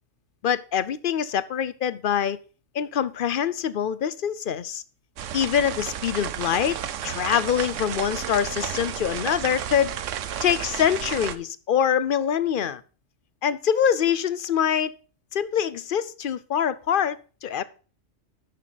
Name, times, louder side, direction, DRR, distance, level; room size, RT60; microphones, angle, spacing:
voice 1, 0.4-2.4 2.7-4.8 5.3-6.8 7.0-10.0 10.4-12.8 13.4-15.0 15.3-17.6, left 8 dB, 55° left, 0.7 m, -24 dB
sound 1, 5.2-11.4, right 9 dB, 85° right, 1.1 m, -32 dB
11.0 x 7.4 x 4.0 m
omnidirectional pair, 1.3 m